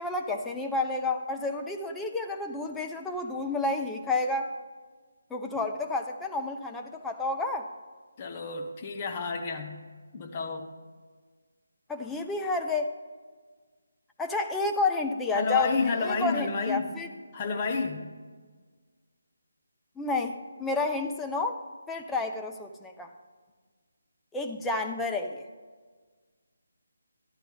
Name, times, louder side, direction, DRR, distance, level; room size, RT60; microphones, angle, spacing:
voice 1, 0.0-4.5 5.3-7.7 11.9-13.0 14.2-17.1 20.0-21.6 21.9-23.1 24.3-25.5, left 3 dB, 5° left, 2 dB, 0.5 m, -30 dB
voice 2, 8.2-9.8 10.1-10.7 15.3-16.9 17.3-18.1, left 4 dB, 25° left, 3 dB, 1.0 m, -30 dB
13.0 x 11.0 x 3.5 m, 1.5 s
figure-of-eight pair, 150°, 0 cm